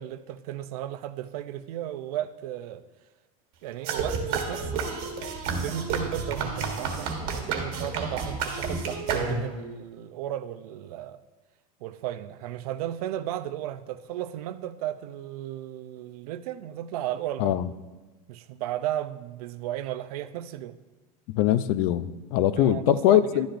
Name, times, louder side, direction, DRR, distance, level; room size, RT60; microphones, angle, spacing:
voice 1, 0.0-2.8 3.6-5.0 5.5-11.2 11.8-17.6 18.3-20.8 22.6-23.5, right 12 dB, 85° right, 0.5 m, -34 dB
sound 1, 3.8-9.7, right 4 dB, 55° right, 1.5 m, -30 dB
voice 2, 21.3-23.5, left 12 dB, 65° left, 0.5 m, -22 dB
11.5 x 10.5 x 2.6 m
supercardioid pair, 145°, 19 cm